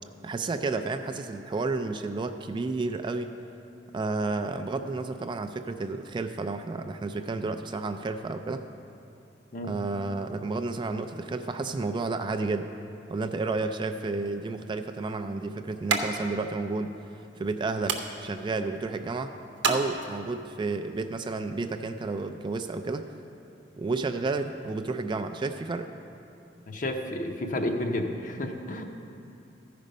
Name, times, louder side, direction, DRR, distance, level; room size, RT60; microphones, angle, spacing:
voice 1, 0.2-3.3 3.9-8.6 9.6-12.7 13.1-16.9 17.4-19.3 19.6-23.0 23.8-25.9, right 3 dB, 25° right, 8 dB, 0.3 m, -31 dB
sound 1, 14.2-20.5, right 4 dB, 90° right, 0.8 m, -35 dB
voice 2, 26.7-28.8, left 1 dB, 45° left, 4 dB, 0.7 m, -31 dB
13.0 x 5.1 x 5.3 m, 2.7 s
head